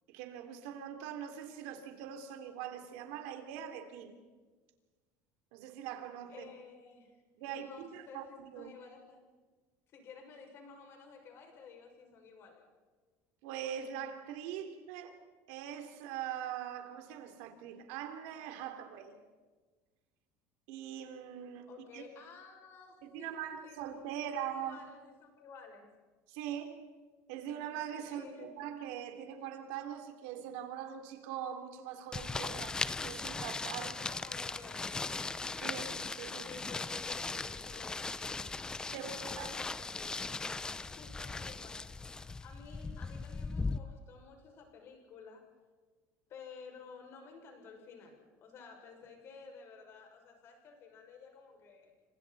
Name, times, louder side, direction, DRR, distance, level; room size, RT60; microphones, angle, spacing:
voice 1, 0.1-4.1 5.5-6.5 7.4-8.7 13.4-15.2 15.5-19.2 20.7-22.0 23.0-24.8 26.3-26.8 27.3-33.9 35.6-36.5 38.9-39.5, right 9 dB, 80° right, 5 dB, 3.5 m, -42 dB
voice 2, 6.3-7.2 7.5-9.3 9.9-12.7 21.7-23.8 24.2-25.9 28.1-28.5 33.7-35.0 36.4-41.8 42.4-45.5 46.3-51.9, left 5 dB, 40° left, 2 dB, 6.5 m, -53 dB
sound 1, 32.1-43.8, left 3 dB, 10° left, 0.6 m, -38 dB
29.5 x 26.0 x 4.3 m, 1.4 s
cardioid pair, 155°, 6 cm